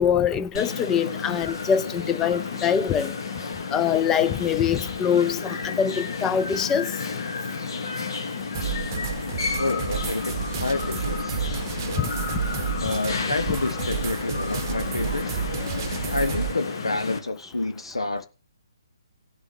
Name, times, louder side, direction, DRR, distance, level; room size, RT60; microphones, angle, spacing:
voice 1, 0.0-3.1 3.7-6.9 12.0-12.4, left 8 dB, 15° left, 0.5 m, -24 dB
sound 1, 0.5-17.2, left 4 dB, 60° left, 1.9 m, -31 dB
sound 2, 8.5-16.5, right 9 dB, 35° right, 0.9 m, -31 dB
voice 2, 9.6-11.4 12.8-15.4 16.1-18.3, left 2 dB, 80° left, 0.8 m, -29 dB
17.5 x 7.1 x 3.1 m
figure-of-eight pair, 140°, 3 cm